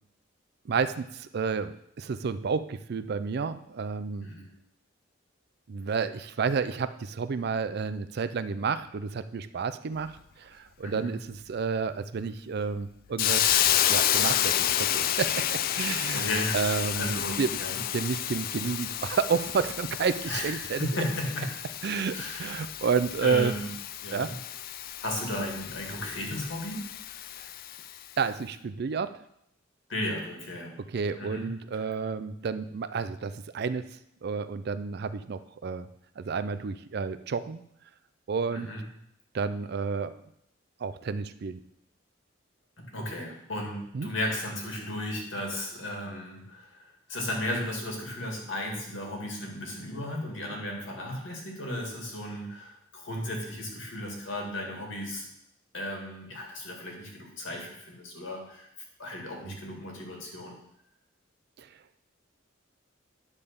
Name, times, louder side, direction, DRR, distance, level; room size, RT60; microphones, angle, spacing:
voice 1, 0.7-4.3 5.7-13.6 13.9-16.3 16.5-17.6 17.9-20.9 21.8-23.5 24.1-24.3 28.2-29.1 30.9-33.9 34.2-35.9 36.2-37.6 38.3-38.7 39.3-40.1 40.8-41.6 43.9-44.1 59.5-59.6 61.6-61.7, right 5 dB, 55° right, 13 dB, 0.4 m, -30 dB
voice 2, 10.8-11.2 15.8-17.8 20.3-21.6 22.1-22.6 23.2-23.7 24.0-24.4 25.0-27.2 29.9-30.8 31.2-31.5 31.7-31.8 38.5-38.8 42.8-55.3 55.7-58.7 59.0-60.6, left 1 dB, 75° left, 0 dB, 2.2 m, -35 dB
Hiss, 13.2-28.0, left 11 dB, 50° left, 0.3 m, -30 dB
9.9 x 3.6 x 6.8 m, 0.75 s
head